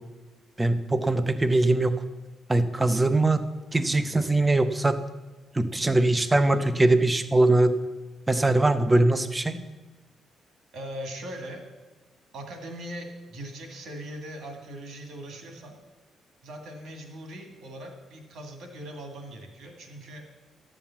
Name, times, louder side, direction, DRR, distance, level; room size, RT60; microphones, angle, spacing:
voice 1, 0.6-2.0 2.5-3.4 3.7-5.0 5.5-7.8 8.3-9.6, right 2 dB, 10° right, 11 dB, 0.6 m, -22 dB
voice 2, 10.7-11.6 12.3-15.8 16.4-20.3, right 1 dB, 65° right, 4 dB, 2.2 m, -40 dB
12.0 x 7.3 x 7.1 m, 1.2 s
cardioid pair, 170°, 0 cm